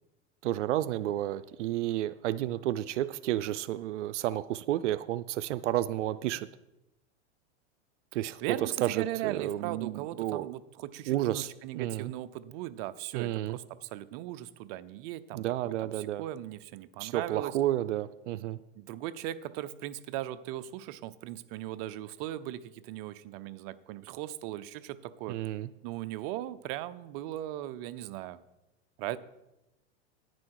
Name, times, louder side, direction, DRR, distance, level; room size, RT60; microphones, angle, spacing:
voice 1, 0.4-6.5 8.1-8.4 8.8-10.5 11.1-11.5 11.7-12.1 13.1-13.6 15.3-16.2 17.0-18.6 25.3-25.7, right 13 dB, 85° right, 15 dB, 0.5 m, -31 dB
voice 2, 8.4-17.6 18.8-25.4 25.8-28.4 29.0-29.2, right 14 dB, 45° right, 13 dB, 0.7 m, -38 dB
10.5 x 9.6 x 4.6 m, 0.93 s
supercardioid pair, 130°, 35 cm